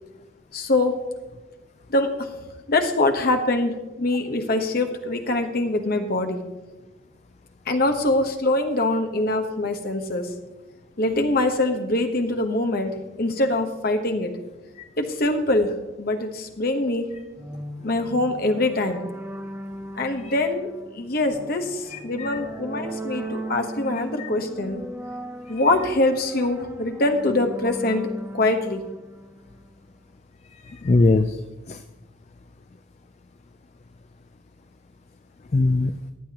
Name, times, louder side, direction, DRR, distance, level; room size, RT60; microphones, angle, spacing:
voice 1, 0.5-0.9 1.9-2.3 2.7-3.7 4.0-6.4 7.7-10.3 11.0-14.3 15.0-17.1 17.8-19.0 19.9-24.8 25.5-28.1 28.3-28.8, left 2 dB, 50° left, 5 dB, 1.1 m, -23 dB
sound 1, 17.4-29.9, right 1 dB, 10° right, 0.8 m, -37 dB
voice 2, 21.9-22.4 24.2-24.3 30.6-31.4 31.7-31.8 35.5-36.0, left 3 dB, 35° left, 9 dB, 0.4 m, -21 dB
15.0 x 10.0 x 2.9 m, 1.1 s
head